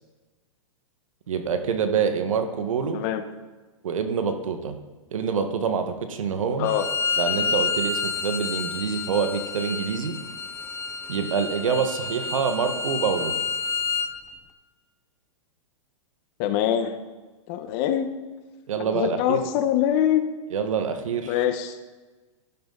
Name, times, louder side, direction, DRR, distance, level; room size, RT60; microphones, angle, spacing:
voice 1, 1.3-3.0 3.8-4.8 5.1-6.7 7.2-10.2 11.1-13.3 18.7-19.4 20.5-21.4, right 6 dB, 80° right, 7 dB, 1.7 m, -26 dB
voice 2, 2.9-3.2 6.6-6.9 16.4-17.0 17.5-18.1 18.8-20.2 21.3-21.8, left 10 dB, 45° left, 9 dB, 1.4 m, -24 dB
Bowed string instrument, 6.6-14.1, left 5 dB, 15° left, 1.0 m, -29 dB
16.5 x 11.5 x 4.1 m, 1.3 s
hypercardioid pair, 120°, 17 cm